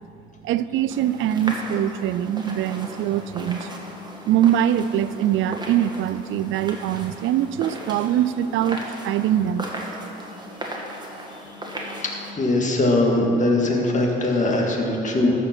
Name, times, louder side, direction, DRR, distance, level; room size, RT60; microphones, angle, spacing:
voice 1, 0.4-3.7 4.3-9.7, right 11 dB, 80° right, 15 dB, 0.4 m, -23 dB
sound 1, 0.9-12.3, right 1 dB, 20° right, 1.6 m, -37 dB
voice 2, 12.4-15.3, left 2 dB, 40° left, 0 dB, 1.9 m, -21 dB
14.0 x 5.0 x 6.1 m, 3.0 s
cardioid pair, 90°, 20 cm